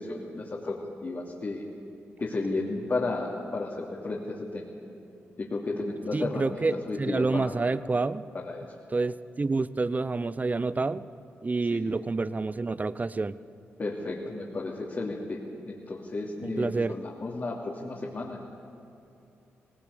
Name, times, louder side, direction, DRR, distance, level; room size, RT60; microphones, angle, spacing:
voice 1, 0.0-1.6 2.2-4.7 5.4-6.6 6.9-7.6 8.3-8.6 11.7-11.9 13.8-18.6, left 2 dB, 45° left, -3 dB, 2.9 m, -33 dB
voice 2, 6.1-8.2 8.9-11.1 11.4-13.4 16.4-17.0, right 3 dB, 30° right, 16 dB, 0.7 m, -28 dB
19.0 x 18.5 x 8.4 m, 2.8 s
supercardioid pair, 55°, 5 cm